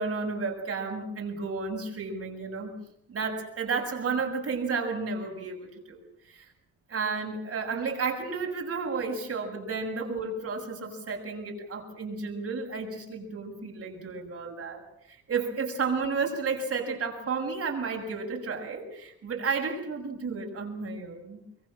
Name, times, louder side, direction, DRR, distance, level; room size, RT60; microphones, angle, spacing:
voice 1, 0.0-2.7 3.1-6.5 6.9-21.4, right 4 dB, 50° right, 2 dB, 7.3 m, -32 dB
25.0 x 23.0 x 7.7 m, 0.76 s
cardioid pair, 90°, 30 cm